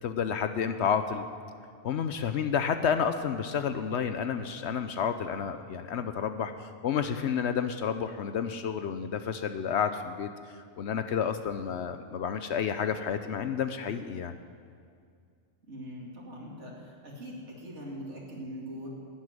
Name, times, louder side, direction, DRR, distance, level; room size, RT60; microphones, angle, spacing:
voice 1, 0.0-1.2 1.8-10.3 10.8-14.4, left 7 dB, 70° left, 9 dB, 0.9 m, -30 dB
voice 2, 15.6-18.9, equal, 70° right, -3 dB, 2.7 m, -42 dB
11.0 x 8.5 x 9.6 m, 2.2 s
omnidirectional pair, 1.3 m